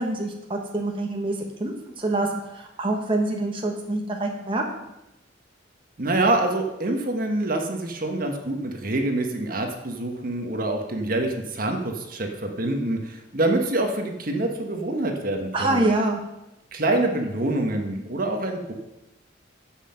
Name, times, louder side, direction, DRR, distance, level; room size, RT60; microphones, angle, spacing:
voice 1, 0.0-1.3 1.6-4.9 15.5-16.2, right 2 dB, 30° right, 1 dB, 1.3 m, -26 dB
voice 2, 6.0-15.8 16.7-18.7, right 2 dB, 50° right, 4 dB, 1.4 m, -26 dB
11.5 x 7.6 x 5.8 m, 0.92 s
head